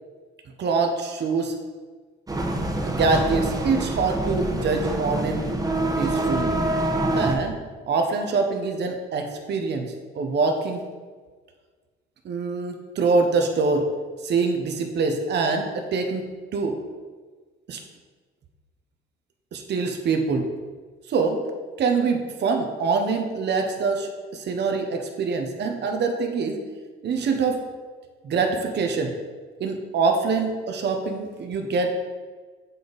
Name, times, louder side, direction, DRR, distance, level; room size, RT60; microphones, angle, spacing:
voice 1, 0.6-1.5 2.9-5.5 6.0-6.5 7.2-7.6 7.9-10.8 12.2-13.9 14.2-16.2 16.5-16.8 17.7-17.8 19.5-20.5 21.1-21.4 21.8-26.6 27.0-27.6 28.2-29.2 29.6-31.9, right 4 dB, 60° right, 4 dB, 0.9 m, -24 dB
sound 1, 2.3-7.3, right 1 dB, 20° right, 1.1 m, -25 dB
7.6 x 5.5 x 4.0 m, 1.5 s
cardioid pair, 90°, 20 cm